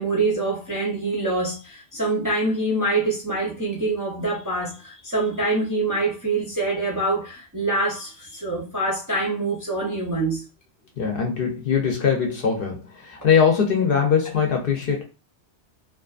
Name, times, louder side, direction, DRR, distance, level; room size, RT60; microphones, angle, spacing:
voice 1, 0.0-10.4 13.2-13.3, right 2 dB, 25° right, 0.5 m, -25 dB
voice 2, 11.0-15.0, left 6 dB, 60° left, 0.7 m, -21 dB
2.4 x 2.4 x 2.3 m
omnidirectional pair, 1.2 m